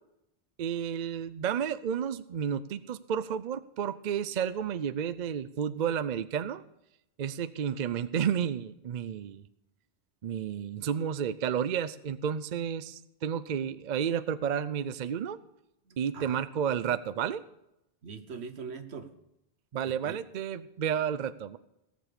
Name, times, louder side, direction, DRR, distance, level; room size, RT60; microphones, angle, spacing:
voice 1, 0.6-6.6 7.2-9.5 10.2-15.4 16.0-17.4 19.7-21.6, right 8 dB, 50° right, 14 dB, 0.6 m, -31 dB
voice 2, 15.9-16.4 16.9-17.0 18.0-19.1 19.8-20.2, right 5 dB, 75° right, 10 dB, 1.3 m, -42 dB
17.5 x 7.2 x 6.7 m, 0.85 s
omnidirectional pair, 1.1 m